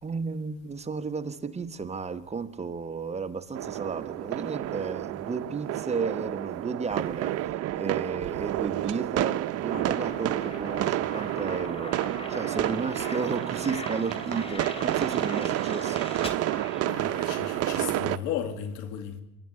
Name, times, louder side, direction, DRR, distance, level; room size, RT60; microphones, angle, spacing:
voice 1, 0.0-12.0 12.3-16.1, right 5 dB, 20° right, 1.3 m, -33 dB
sound 1, 3.5-18.2, right 14 dB, 55° right, 0.7 m, -30 dB
sound 2, 9.7-17.5, left 2 dB, 20° left, 2.8 m, -41 dB
voice 2, 16.8-19.2, left 9 dB, 85° left, 2.2 m, -34 dB
26.5 x 11.0 x 9.7 m
supercardioid pair, 105°, 30 cm